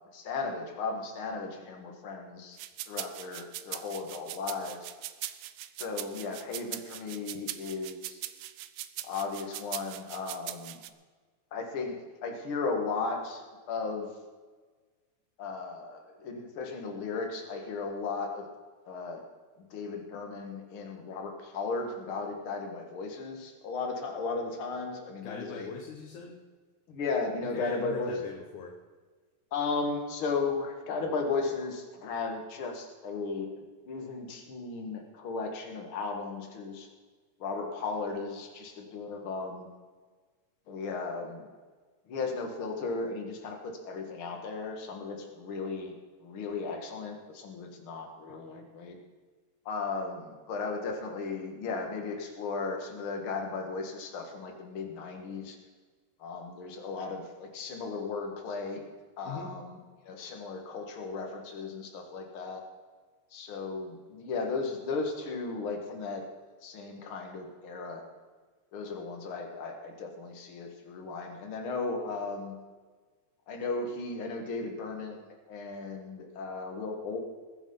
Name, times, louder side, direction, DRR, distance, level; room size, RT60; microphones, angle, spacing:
voice 1, 0.1-2.6 2.9-4.8 5.8-8.2 9.0-10.8 11.5-14.1 15.4-18.4 18.9-19.2 19.7-25.7 26.9-28.2 29.5-33.6 33.9-36.9 37.4-39.7 40.7-41.5 42.1-45.9 46.2-49.0 49.7-55.6 56.2-58.8 59.2-59.8 60.0-62.6 63.3-66.2 66.6-68.0 68.7-72.6 73.5-77.2, left 4 dB, 50° left, 3 dB, 2.4 m, -35 dB
sound 1, 2.6-10.9, right 14 dB, 75° right, 1.9 m, -40 dB
voice 2, 25.2-26.4 27.4-28.8 48.3-48.4 59.2-59.5, left 5 dB, 80° left, 1 dB, 2.6 m, -41 dB
20.5 x 7.8 x 5.6 m, 1.4 s
omnidirectional pair, 3.4 m